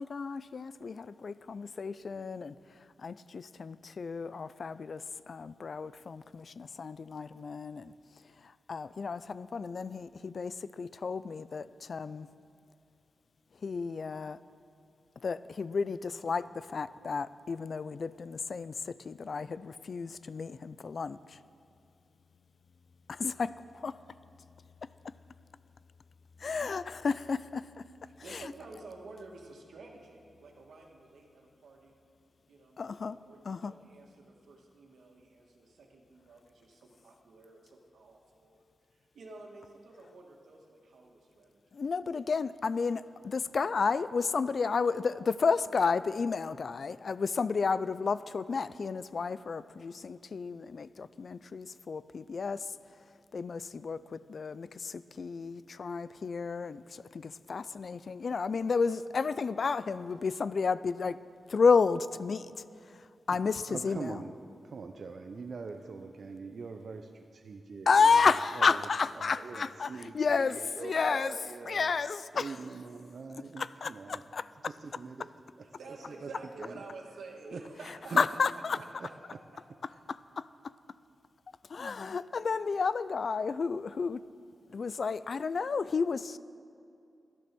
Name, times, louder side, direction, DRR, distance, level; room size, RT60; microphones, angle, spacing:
voice 1, 0.0-7.9 8.4-12.3 13.6-14.4 15.2-21.4 23.1-24.0 26.4-27.8 28.3-28.5 32.8-33.2 33.4-33.7 41.7-52.8 53.3-61.2 61.5-62.5 62.8-64.2 67.9-71.4 71.6-72.6 73.3-74.7 78.2-78.8 80.1-80.7 81.7-84.2 84.7-86.4, left 5 dB, 55° left, 16 dB, 0.4 m, -32 dB
voice 2, 28.2-31.9 32.5-38.7 38.9-41.5 75.8-78.2 79.9-80.0, right 3 dB, 85° right, 0 dB, 2.0 m, -50 dB
voice 3, 63.7-64.3 64.6-68.2 68.6-68.9 69.2-71.9 72.3-74.2 74.6-75.3 76.1-76.3 76.6-76.8 77.5-77.6 78.1-78.2 79.0-79.1, right 4 dB, 60° right, 5 dB, 0.7 m, -43 dB
12.5 x 12.0 x 6.1 m, 2.5 s
wide cardioid pair, 95°, 0 cm